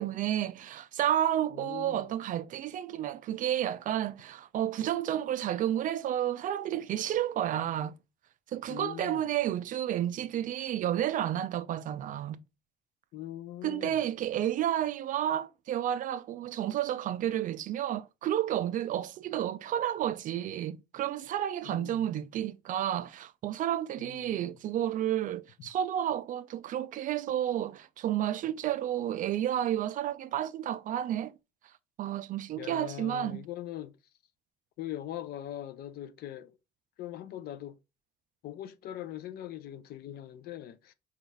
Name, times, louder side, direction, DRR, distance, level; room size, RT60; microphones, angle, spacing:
voice 1, 0.0-7.9 8.5-12.4 13.6-31.3 32.0-33.4, right 11 dB, 50° right, 0.4 m, -31 dB
voice 2, 1.5-2.1 8.7-9.3 13.1-14.0 21.6-22.2 24.0-24.6 32.6-33.9 34.8-36.6 37.0-37.8 38.4-40.9, left 12 dB, 70° left, 0.5 m, -41 dB
4.1 x 2.4 x 3.2 m
cardioid pair, 110°, 17 cm